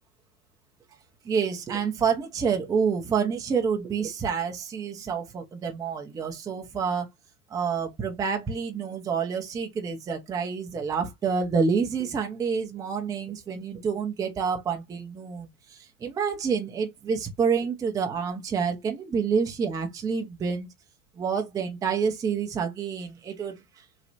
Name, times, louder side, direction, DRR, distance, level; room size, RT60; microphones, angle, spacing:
voice 1, 1.2-7.1 7.5-20.7 21.2-23.9, right 6 dB, 10° right, 0.4 m, -28 dB
3.1 x 2.1 x 2.7 m
figure-of-eight pair, 85°, 44 cm